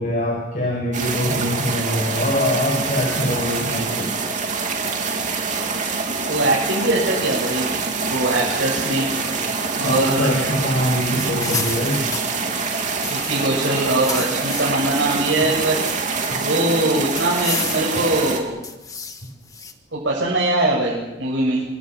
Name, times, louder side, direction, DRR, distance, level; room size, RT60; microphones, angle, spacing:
voice 1, 0.0-4.1 9.8-12.0, equal, 45° left, -1 dB, 6.5 m, -23 dB
sound 1, 0.9-18.4, right 4 dB, 40° right, 3.1 m, -25 dB
voice 2, 6.3-9.1 9.8-10.3 13.1-18.6 19.9-21.6, right 2 dB, 85° right, -5 dB, 7.7 m, -22 dB
sound 2, 11.2-13.5 13.8-15.0 15.4-16.5 17.2-18.1 18.6-19.7, left 5 dB, 20° left, 1.7 m, -32 dB
26.5 x 25.5 x 6.1 m, 1.0 s
head